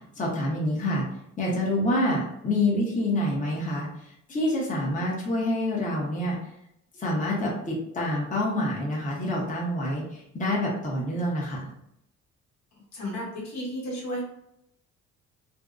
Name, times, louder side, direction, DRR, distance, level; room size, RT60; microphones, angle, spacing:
voice 1, 0.2-1.0 1.4-6.4 6.9-11.7, left 1 dB, 25° left, -4 dB, 0.7 m, -27 dB
voice 2, 12.9-14.2, equal, 65° left, -3 dB, 1.0 m, -33 dB
2.6 x 2.1 x 2.4 m, 0.78 s
cardioid pair, 90°, 30 cm